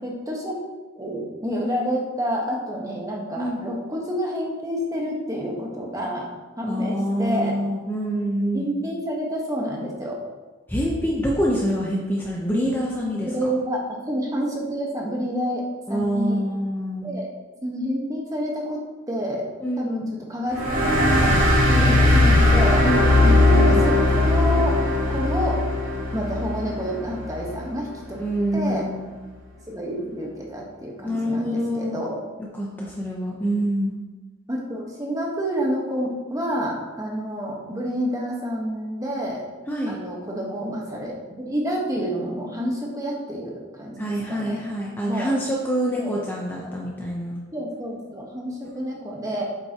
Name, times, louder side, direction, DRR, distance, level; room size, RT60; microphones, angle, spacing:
voice 1, 0.0-0.6 0.9-6.3 6.6-7.6 8.5-10.2 13.2-15.6 15.9-16.4 17.0-17.3 17.6-18.8 19.1-19.4 19.8-20.0 20.3-21.4 21.8-22.1 22.5-22.8 23.6-24.8 25.1-25.6 26.1-28.2 28.5-28.9 29.7-32.2 34.5-39.4 39.8-44.6 45.0-45.3 46.0-46.2 46.6-46.7 47.5-49.4, equal, 15° right, -2 dB, 1.2 m, -28 dB
voice 2, 6.7-8.7 10.7-13.3 15.9-17.1 19.6-20.1 21.7-22.4 22.8-23.8 28.2-29.0 31.0-32.1 32.5-33.9 39.7-39.9 44.0-47.4, equal, 10° left, -3 dB, 0.7 m, -26 dB
sound 1, 20.5-27.6, left 2 dB, 45° right, 2.6 m, -19 dB
7.8 x 7.5 x 2.9 m, 1.3 s
head